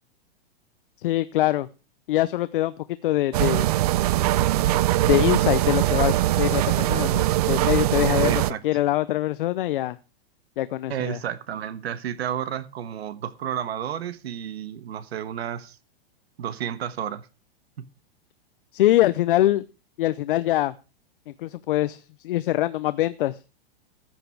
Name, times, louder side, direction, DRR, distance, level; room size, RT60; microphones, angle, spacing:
voice 1, 1.0-1.7 2.1-2.7 3.0-3.7 5.1-10.0 10.6-11.2 18.7-19.6 20.0-20.7 21.4-23.4, left 15 dB, 55° left, 14 dB, 0.7 m, -23 dB
sound 1, 3.3-8.5, right 15 dB, 40° right, 0.5 m, -21 dB
voice 2, 8.1-8.6 10.9-15.8 16.4-17.3 17.8-17.9, right 9 dB, 80° right, 14 dB, 1.4 m, -31 dB
14.5 x 9.3 x 4.6 m, 0.31 s
supercardioid pair, 160°, 31 cm